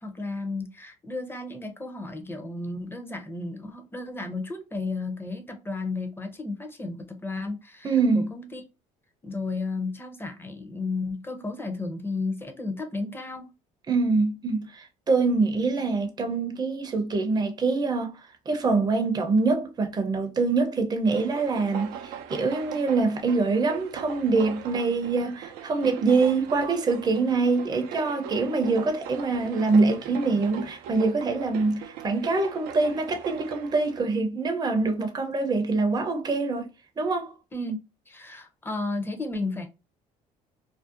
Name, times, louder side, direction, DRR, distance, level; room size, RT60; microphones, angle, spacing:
voice 1, 0.0-8.6 9.2-13.5 37.5-39.7, left 3 dB, 15° left, 0.7 m, -33 dB
voice 2, 7.8-8.3 13.9-18.2 18.5-36.7 37.0-37.3, right 3 dB, 25° right, 0.6 m, -24 dB
sound 1, 21.1-34.0, right 9 dB, 85° right, 0.4 m, -40 dB
2.6 x 2.0 x 2.4 m
supercardioid pair, 80°, 15 cm